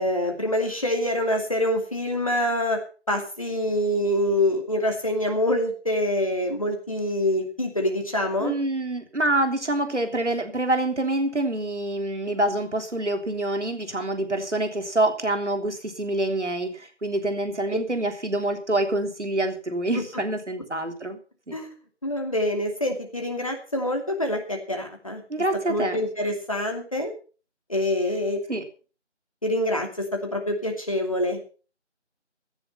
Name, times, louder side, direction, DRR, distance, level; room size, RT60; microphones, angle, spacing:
voice 1, 0.0-2.8 3.1-8.6 19.9-20.0 21.5-21.7 22.0-25.2 25.7-27.1 27.7-28.6 29.4-31.5, left 1 dB, 30° left, 2 dB, 2.6 m, -26 dB
voice 2, 8.4-21.2 21.5-21.6 25.3-26.0 28.5-28.6, right 1 dB, 70° right, 6 dB, 3.5 m, -26 dB
17.0 x 10.5 x 5.5 m, 0.37 s
figure-of-eight pair, 175°, 36 cm